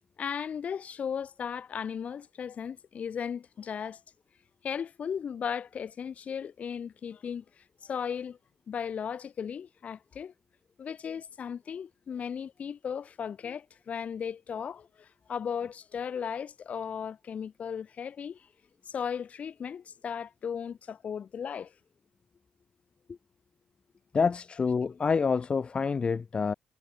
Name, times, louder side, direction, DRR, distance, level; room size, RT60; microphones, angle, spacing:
voice 1, 0.2-4.0 4.6-8.4 8.7-10.3 10.8-18.5 18.9-21.7, left 7 dB, 55° left, 4.7 m, -36 dB
voice 2, 24.1-26.5, left 5 dB, 40° left, 1.8 m, -27 dB
cardioid pair, 85°, 3 cm